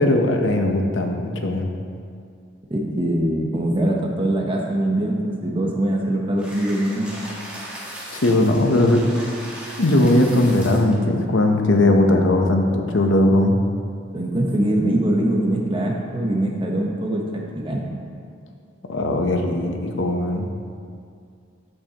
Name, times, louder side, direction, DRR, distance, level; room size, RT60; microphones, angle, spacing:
voice 1, 0.0-1.7 8.1-9.0 9.8-13.6 18.9-20.5, left 1 dB, 70° left, 3 dB, 0.8 m, -19 dB
voice 2, 2.7-7.2 14.1-17.9, right 1 dB, 25° right, -1 dB, 0.9 m, -22 dB
sound 1, 6.4-11.0, equal, 5° right, 1.4 m, -37 dB
13.5 x 5.6 x 2.9 m, 2.3 s
head